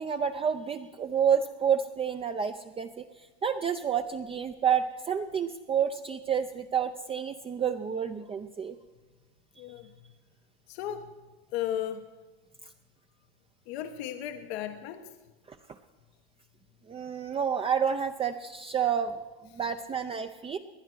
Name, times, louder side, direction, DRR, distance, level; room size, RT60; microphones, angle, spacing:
voice 1, 0.0-3.0 3.4-8.8 15.5-15.6 16.9-19.2 19.5-20.6, right 7 dB, 15° right, 6 dB, 0.6 m, -29 dB
voice 2, 9.6-9.9 10.7-11.1 11.5-12.0 13.7-15.1, left 10 dB, 75° left, 7 dB, 1.2 m, -35 dB
19.0 x 11.0 x 6.2 m, 1.2 s
supercardioid pair, 125°, 32 cm